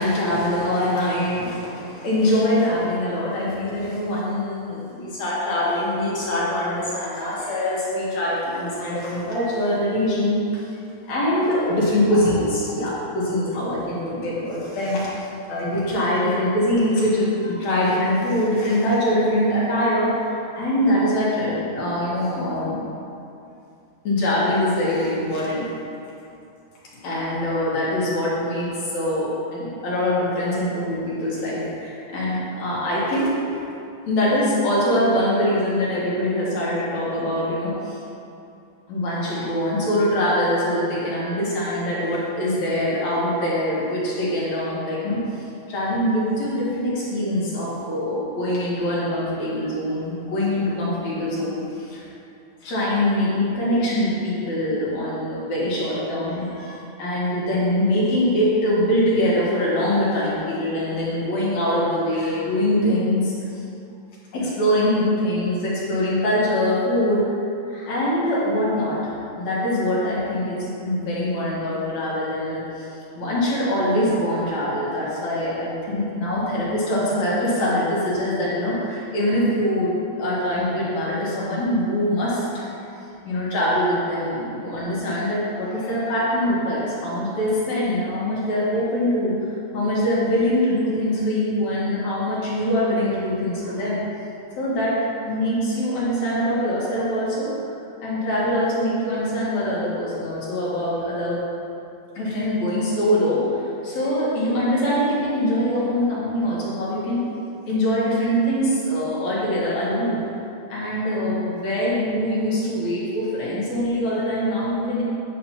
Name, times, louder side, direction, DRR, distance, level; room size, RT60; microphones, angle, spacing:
voice 1, 0.0-10.6 11.1-15.1 15.5-22.9 24.0-25.7 27.0-33.4 34.1-38.0 38.9-45.2 45.7-52.0 52.6-63.6 64.3-67.4 67.7-72.9 73.2-82.9 83.2-89.4 89.7-94.0 94.6-95.0 95.3-97.5 98.0-101.4 102.2-107.2 107.6-110.2 110.7-115.0, left 1 dB, 65° left, -7 dB, 2.7 m, -23 dB
9.3 x 6.3 x 2.9 m, 2.6 s
omnidirectional pair, 3.5 m